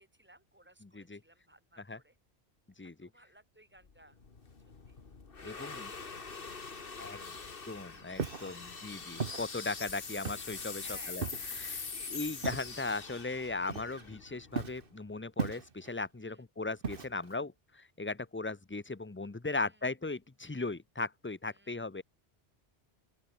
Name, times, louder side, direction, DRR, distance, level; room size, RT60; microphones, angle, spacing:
voice 1, 0.0-2.2 3.0-4.2 4.9-5.0 5.4-6.5 7.0-8.9 10.0-10.2 10.8-11.2 11.9-12.3 16.2-16.4 19.6-19.8 21.5-21.8, right 1 dB, 10° right, 4.2 m, -61 dB
voice 2, 0.8-1.2 1.9-2.0 2.8-3.1 5.4-5.9 7.0-7.2 7.7-11.2 11.6-11.8 12.1-22.0, left 3 dB, 15° left, 0.6 m, -38 dB
sound 1, 3.8-15.1, left 4 dB, 60° left, 1.9 m, -44 dB
Walk footsteps, 8.1-8.5 9.2-9.4 10.2-10.6 11.2-11.6 12.4-12.8 13.7-14.1 14.5-14.9 15.4-15.9 16.8-17.3, right 5 dB, 60° right, 1.6 m, -37 dB
open air
omnidirectional pair, 1.0 m